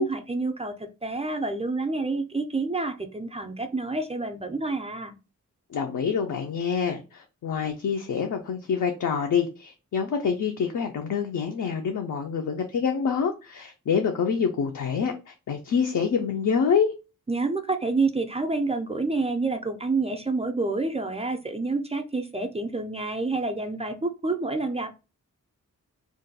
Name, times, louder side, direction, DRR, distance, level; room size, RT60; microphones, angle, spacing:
voice 1, 0.0-5.1 17.3-24.9, right 3 dB, 20° right, 0.3 m, -28 dB
voice 2, 5.7-16.9, left 6 dB, 70° left, 0.5 m, -26 dB
2.5 x 2.2 x 3.9 m
wide cardioid pair, 130°, 33 cm